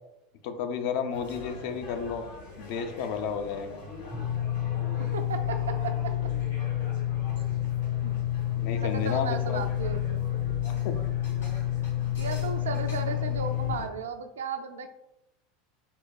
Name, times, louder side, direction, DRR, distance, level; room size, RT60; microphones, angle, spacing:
voice 1, 0.4-2.3 2.6-3.8 8.6-9.6 10.6-10.9, left 6 dB, 60° left, 7 dB, 0.4 m, -32 dB
sound 1, 1.1-13.9, left 2 dB, 80° left, 1.2 m, -43 dB
sound 2, 4.1-13.7, left 13 dB, 10° right, 0.4 m, -29 dB
voice 2, 5.1-6.0 8.0-8.2 8.8-10.2 12.2-14.9, right 5 dB, 80° right, 6 dB, 0.3 m, -34 dB
3.8 x 2.2 x 2.2 m, 0.87 s
hypercardioid pair, 80°, 0 cm